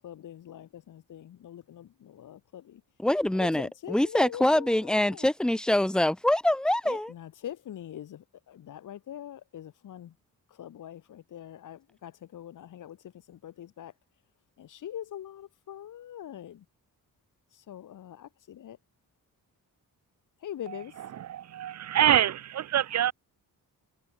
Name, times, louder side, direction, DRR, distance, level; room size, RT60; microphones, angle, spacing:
voice 1, 0.0-2.8 3.3-5.3 6.8-10.1 10.6-13.0 13.3-13.9 14.6-16.6 17.7-18.8 20.4-20.9, left 11 dB, 60° left, 1.0 m, -43 dB
voice 2, 3.0-7.1, left 1 dB, ahead, 0.4 m, -25 dB
voice 3, 20.7-23.1, right 11 dB, 50° right, 0.7 m, -26 dB
wide cardioid pair, 145°, 35 cm